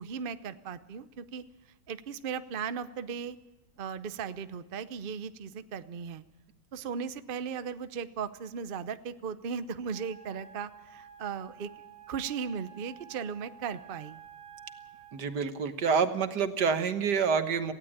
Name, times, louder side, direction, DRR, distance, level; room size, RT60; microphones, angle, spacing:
voice 1, 0.0-3.4 3.8-6.2 6.7-11.7 12.1-14.2, right 6 dB, 50° right, 13 dB, 0.7 m, -37 dB
Wind instrument woodwind instrument, 9.9-15.2, right 9 dB, 25° right, 3.3 m, -51 dB
voice 2, 15.1-17.7, right 6 dB, 75° right, 9 dB, 1.8 m, -27 dB
18.5 x 16.0 x 8.7 m, 1.1 s
omnidirectional pair, 1.8 m